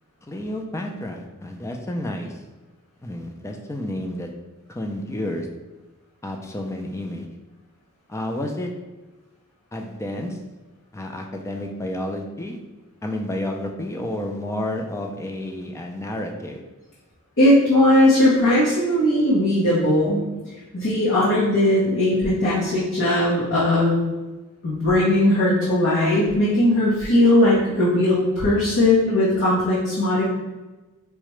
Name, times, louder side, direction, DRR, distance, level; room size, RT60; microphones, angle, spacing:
voice 1, 0.3-2.3 3.0-4.3 4.7-5.5 6.2-7.3 8.1-8.7 9.7-10.4 10.9-12.6 13.0-16.6, left 1 dB, 15° left, 2 dB, 0.3 m, -30 dB
voice 2, 17.4-20.3 20.7-24.1 24.6-30.2, left 1 dB, 55° left, -7 dB, 0.8 m, -18 dB
4.7 x 2.1 x 3.0 m, 1.2 s
head